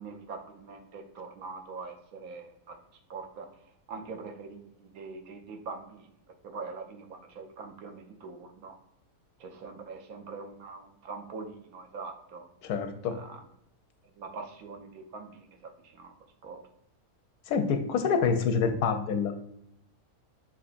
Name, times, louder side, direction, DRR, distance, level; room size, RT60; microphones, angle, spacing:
voice 1, 0.0-2.8 3.1-3.5 3.9-6.1 6.4-8.8 9.4-12.5 13.1-13.4 14.2-16.1 16.4-16.6, right 4 dB, 75° right, 4 dB, 1.2 m, -43 dB
voice 2, 12.6-13.1 17.5-19.3, left 5 dB, 85° left, 7 dB, 1.1 m, -27 dB
6.4 x 3.0 x 2.5 m, 0.77 s
omnidirectional pair, 1.5 m